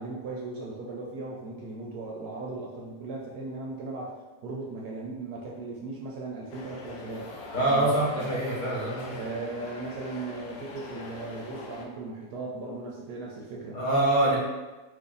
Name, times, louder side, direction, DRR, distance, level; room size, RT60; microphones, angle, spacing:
voice 1, 0.0-7.4 7.6-8.4 9.1-13.8, right 3 dB, 75° right, -3 dB, 1.1 m, -37 dB
sound 1, 6.5-11.9, left 3 dB, 70° left, 0.9 m, -42 dB
voice 2, 7.5-9.2 13.7-14.4, right 1 dB, 35° left, -6 dB, 0.9 m, -25 dB
2.9 x 2.5 x 3.9 m, 1.1 s
omnidirectional pair, 1.8 m